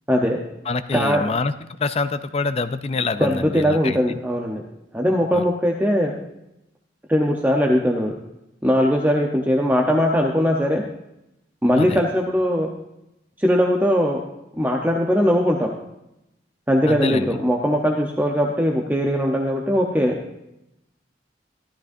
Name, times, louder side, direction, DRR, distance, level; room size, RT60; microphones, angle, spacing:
voice 1, 0.1-0.4 0.9-1.2 3.2-4.6 4.9-6.1 7.1-8.2 8.6-10.8 11.6-12.7 13.4-14.2 14.5-15.7 16.7-20.2, equal, 10° right, 0 dB, 0.8 m, -20 dB
voice 2, 0.7-1.5 1.8-4.0 5.3-5.4 11.8-12.0 16.9-17.4, left 4 dB, 35° left, 12 dB, 0.4 m, -25 dB
14.5 x 12.5 x 2.7 m, 0.87 s
head